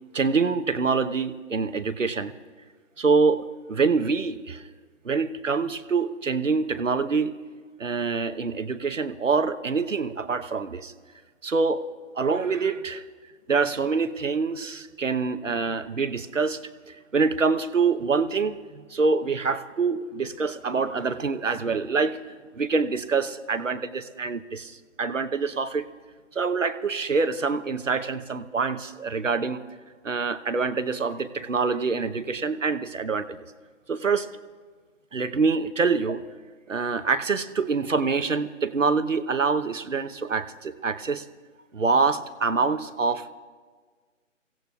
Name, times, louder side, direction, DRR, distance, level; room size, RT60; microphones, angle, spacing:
voice 1, 0.1-2.3 3.0-4.6 5.0-7.4 7.8-10.9 11.4-11.8 12.2-13.0 13.5-16.6 17.1-22.2 22.5-25.8 26.3-29.6 30.0-33.4 33.9-34.3 35.1-36.2 36.7-41.2 41.7-43.3, right 4 dB, 75° right, 12 dB, 0.9 m, -25 dB
30.0 x 17.0 x 2.3 m, 1.5 s
figure-of-eight pair, 155°, 38 cm